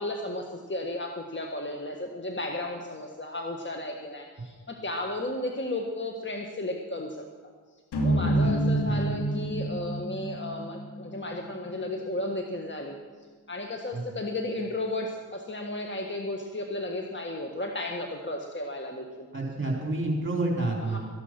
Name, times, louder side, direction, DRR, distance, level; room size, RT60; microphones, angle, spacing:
voice 1, 0.0-7.2 8.0-13.0 13.5-19.3 20.8-21.0, left 1 dB, 25° left, 3 dB, 1.7 m, -34 dB
sound 1, 7.9-12.2, right 1 dB, 70° left, 2.6 m, -28 dB
voice 2, 19.3-21.0, right 2 dB, 30° right, 0 dB, 3.8 m, -29 dB
14.5 x 11.0 x 6.1 m, 1.5 s
supercardioid pair, 45°, 42 cm